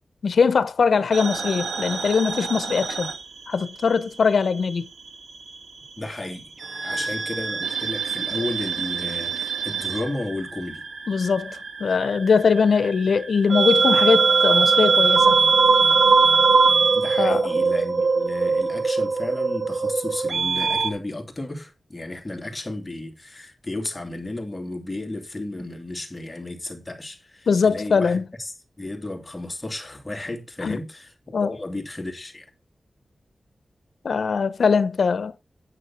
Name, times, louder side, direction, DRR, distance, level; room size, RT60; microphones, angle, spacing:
voice 1, 0.2-3.1 3.5-4.9 6.9-7.0 11.1-15.4 17.2-17.5 27.5-28.3 30.6-30.8 31.3-31.6 34.0-35.3, left 5 dB, 80° left, 0.8 m, -21 dB
sound 1, 1.1-4.0 4.2-5.4 6.6-20.9, right 4 dB, 80° right, 1.6 m, -22 dB
voice 2, 6.0-6.5 6.8-10.8 16.9-32.5, left 2 dB, 20° left, 2.7 m, -33 dB
9.8 x 7.8 x 4.3 m
wide cardioid pair, 115°, 0 cm